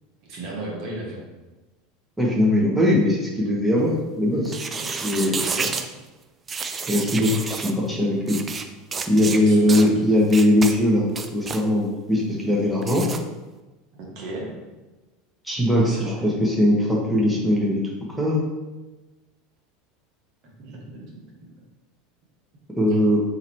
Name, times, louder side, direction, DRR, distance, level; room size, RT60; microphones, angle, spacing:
voice 1, 0.2-1.2 4.8-5.7 9.2-9.9 13.9-14.5 15.8-16.3 20.6-21.2 22.9-23.0, right 2 dB, 50° right, -3 dB, 1.4 m, -35 dB
voice 2, 2.2-4.5 5.0-5.3 6.9-8.4 9.1-13.0 15.4-17.9 18.2-18.4 22.8-23.2, left 1 dB, 5° right, -4 dB, 1.3 m, -20 dB
sound 1, 4.4-5.9 6.5-7.7 8.3-8.6 8.9-9.4 9.7-9.9 10.3-10.7 11.1-11.6 12.8-13.2, right 5 dB, 25° right, 0.4 m, -30 dB
3.8 x 3.0 x 4.4 m, 1.1 s
figure-of-eight pair, 80°, 0 cm